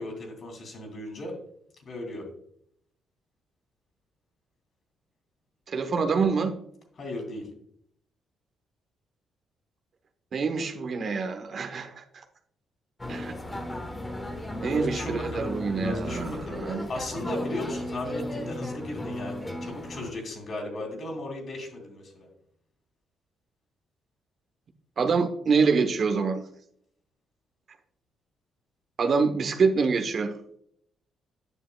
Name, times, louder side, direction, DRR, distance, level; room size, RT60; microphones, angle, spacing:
voice 1, 0.0-1.4 1.9-2.3 7.0-7.5 14.6-22.3, left 1 dB, 50° left, 2 dB, 2.7 m, -36 dB
voice 2, 5.7-6.5 10.3-12.0 13.1-13.3 14.6-16.9 25.0-26.4 29.0-30.3, right 5 dB, 50° right, 6 dB, 0.9 m, -26 dB
sound 1, 13.0-20.1, left 1 dB, 15° left, 1.1 m, -35 dB
10.0 x 6.5 x 2.3 m, 0.68 s
cardioid pair, 90°, 0 cm